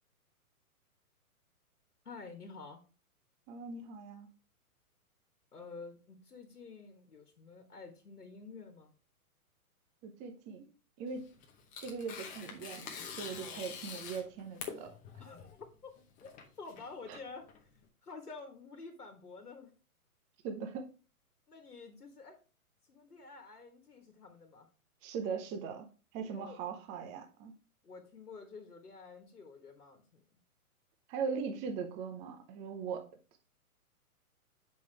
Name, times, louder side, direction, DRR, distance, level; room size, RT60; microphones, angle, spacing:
voice 1, 2.0-2.8 5.5-8.9 13.3-13.7 15.2-15.9 16.2-17.7 18.0-19.7 21.5-22.4 22.9-24.7 26.3-26.6 27.8-30.2, left 4 dB, 90° left, 4 dB, 1.5 m, -50 dB
voice 2, 3.5-4.3 10.0-10.6 11.0-11.3 11.8-14.9 17.1-17.2 20.4-20.9 25.0-25.9 26.1-27.5 31.1-33.1, right 5 dB, 15° right, 6 dB, 0.6 m, -40 dB
Tearing, 11.1-17.8, left 6 dB, 20° left, 0.8 m, -46 dB
7.3 x 5.4 x 3.3 m, 0.35 s
figure-of-eight pair, 125°, 44 cm